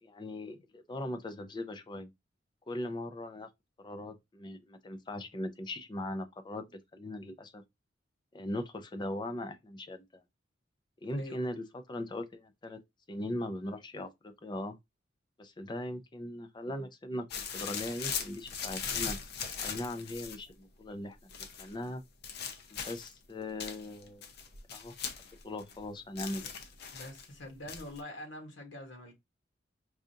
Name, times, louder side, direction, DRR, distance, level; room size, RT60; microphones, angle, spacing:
voice 1, 0.0-2.1 2.7-3.5 3.8-7.6 8.3-10.0 11.0-12.8 13.1-14.8 15.4-19.2 19.6-21.2 21.6-22.0 22.7-24.2 24.7-24.9 25.4-26.5, left 1 dB, 25° left, 0.5 m, -39 dB
sound 1, 17.3-20.5 21.3-21.7 22.2-23.2 23.6-25.8 26.2-27.3 27.7-28.0, left 6 dB, 60° left, 0.7 m, -39 dB
voice 2, 26.9-29.1, left 1 dB, 80° left, 1.2 m, -45 dB
4.7 x 2.5 x 2.7 m
head